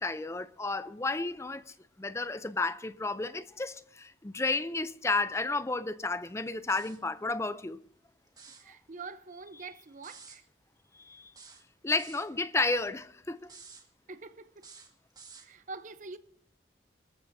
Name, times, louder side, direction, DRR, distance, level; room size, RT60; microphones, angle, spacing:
voice 1, 0.0-7.8 10.9-11.3 11.8-13.5, left 3 dB, 15° left, 0.5 m, -32 dB
sound 1, 6.7-7.1 8.3-8.7 10.0-10.4 11.3-12.3 13.4-13.9 14.6-15.5, right 5 dB, 25° right, 1.8 m, -51 dB
voice 2, 8.6-10.4 14.1-14.7 15.4-16.2, right 4 dB, 45° right, 0.7 m, -45 dB
27.0 x 14.0 x 2.7 m
head